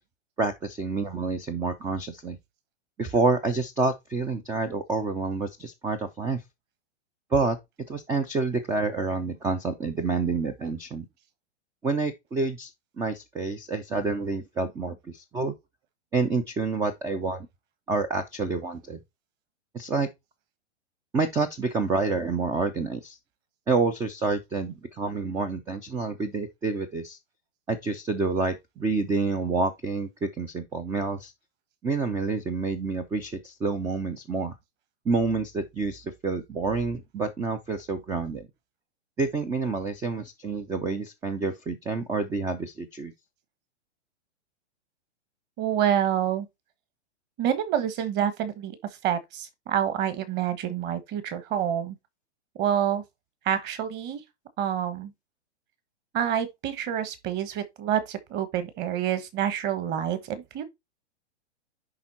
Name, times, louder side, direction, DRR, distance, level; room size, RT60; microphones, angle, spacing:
voice 1, 0.4-2.4 3.0-6.4 7.3-7.6 7.9-11.1 11.8-12.7 13.0-15.5 16.1-17.5 17.9-19.0 19.7-20.1 21.1-23.2 23.7-27.2 27.7-31.3 31.8-34.5 35.1-38.5 39.2-43.1, right 3 dB, 10° right, 0.4 m, -28 dB
voice 2, 45.6-46.5 47.4-48.8 49.0-52.0 52.6-53.0 53.4-54.2 54.6-55.1 56.1-60.6, right 9 dB, 30° right, 1.4 m, -27 dB
10.5 x 3.6 x 4.2 m
hypercardioid pair, 140°, 35 cm